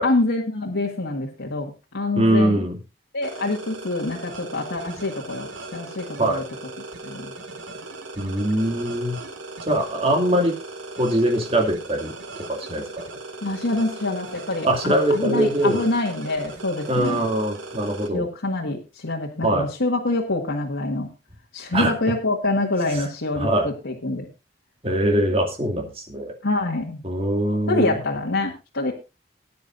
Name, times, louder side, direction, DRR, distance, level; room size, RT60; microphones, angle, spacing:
voice 1, 0.0-2.6 3.1-6.4 7.0-7.3 13.4-17.2 18.1-21.1 21.5-24.3 26.4-27.0 27.7-28.9, left 2 dB, 85° left, -2 dB, 1.8 m, -26 dB
voice 2, 2.1-2.8 6.2-6.4 8.2-9.2 9.7-10.5 11.0-12.1 12.5-13.0 14.6-15.8 16.9-18.2 19.4-19.7 21.7-21.9 22.9-23.1 23.3-23.7 24.8-26.3 27.0-28.0, right 1 dB, 30° right, 3 dB, 2.5 m, -22 dB
sound 1, 3.2-18.1, right 2 dB, 90° right, 2.0 m, -38 dB
20.0 x 9.6 x 2.6 m, 0.27 s
head